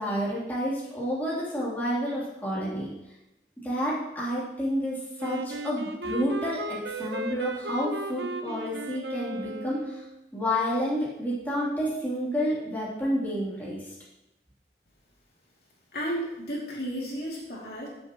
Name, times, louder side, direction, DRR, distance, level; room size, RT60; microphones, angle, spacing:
voice 1, 0.0-2.9 3.6-10.0 10.3-13.8, equal, 10° left, -8 dB, 3.2 m, -30 dB
Wind instrument woodwind instrument, 5.2-10.2, right 1 dB, 75° right, 0.9 m, -35 dB
voice 2, 15.9-17.9, equal, 60° left, -4 dB, 2.7 m, -33 dB
14.5 x 7.5 x 3.0 m, 0.89 s
head